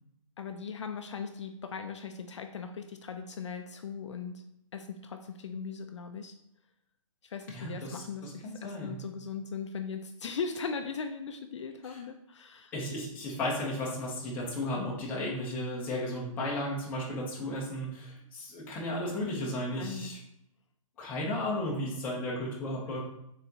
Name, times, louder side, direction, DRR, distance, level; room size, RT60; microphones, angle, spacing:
voice 1, 0.4-4.4 4.7-6.3 7.2-12.7 19.1-19.4 19.7-20.2, left 5 dB, 55° left, 6 dB, 0.4 m, -39 dB
voice 2, 7.5-9.0 11.9-12.0 12.7-20.2 21.0-23.0, left 1 dB, 10° left, -5 dB, 0.6 m, -34 dB
4.1 x 3.8 x 2.8 m, 0.79 s
hypercardioid pair, 165°, 18 cm